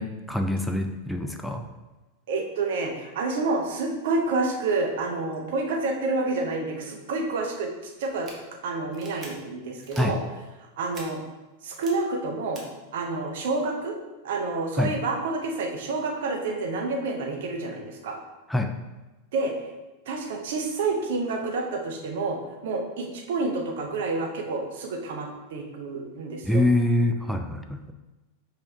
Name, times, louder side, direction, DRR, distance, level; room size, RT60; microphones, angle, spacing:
voice 1, 0.0-1.6 10.0-10.2 14.8-14.9 18.5-18.7 26.4-27.9, left 1 dB, ahead, 4 dB, 0.3 m, -25 dB
voice 2, 2.3-8.3 8.6-10.2 10.6-11.2 11.6-12.6 12.9-14.0 14.2-18.2 19.3-19.5 20.1-26.6, right 3 dB, 55° right, 2 dB, 0.7 m, -29 dB
sound 1, 8.1-8.3 8.9-9.3 9.8-10.0 10.9-11.0 11.7-11.9 12.5-12.6, right 3 dB, 25° right, 0.8 m, -43 dB
5.3 x 2.8 x 3.3 m, 1.1 s
figure-of-eight pair, 90°, 0 cm